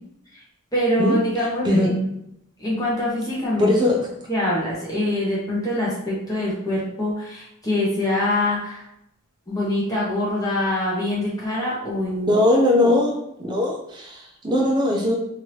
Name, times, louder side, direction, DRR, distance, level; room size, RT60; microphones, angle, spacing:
voice 1, 0.7-2.0 2.6-3.7 4.3-8.9 9.5-12.3, left 1 dB, 15° left, -7 dB, 0.9 m, -24 dB
voice 2, 1.6-2.0 3.6-4.1 12.3-15.1, left 1 dB, 20° right, -2 dB, 0.6 m, -20 dB
3.0 x 2.7 x 3.1 m, 0.77 s
head